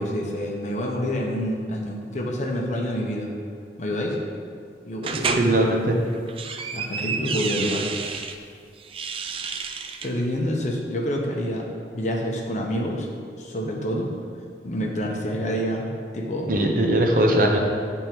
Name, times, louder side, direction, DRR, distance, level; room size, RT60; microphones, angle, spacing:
voice 1, 0.0-3.3 3.8-4.2 4.8-5.7 6.7-7.9 10.0-11.7 11.9-13.1 13.4-14.1 14.6-15.9 16.1-16.5, equal, 40° left, 0 dB, 0.8 m, -27 dB
sound 1, 5.0-5.5 6.1-8.4 8.8-10.1, right 5 dB, 30° right, 0.3 m, -30 dB
voice 2, 5.1-6.0 16.5-17.6, right 1 dB, 50° right, 1 dB, 0.7 m, -20 dB
9.5 x 3.6 x 4.5 m, 2.2 s
head